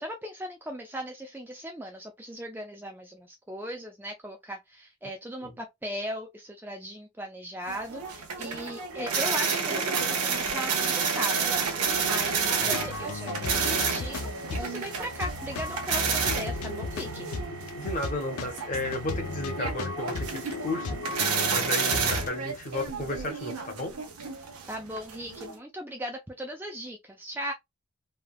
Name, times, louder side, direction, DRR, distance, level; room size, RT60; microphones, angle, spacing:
voice 1, 0.0-17.3 24.7-27.5, equal, 10° right, 0.3 m, -38 dB
sound 1, 7.7-25.6, right 5 dB, 90° right, 0.8 m, -30 dB
sound 2, 8.9-21.9, right 3 dB, 60° right, 1.0 m, -46 dB
sound 3, 12.6-22.3, left 3 dB, 80° left, 0.5 m, -36 dB
voice 2, 17.7-23.9, left 1 dB, 35° left, 0.8 m, -34 dB
3.2 x 2.2 x 2.2 m
head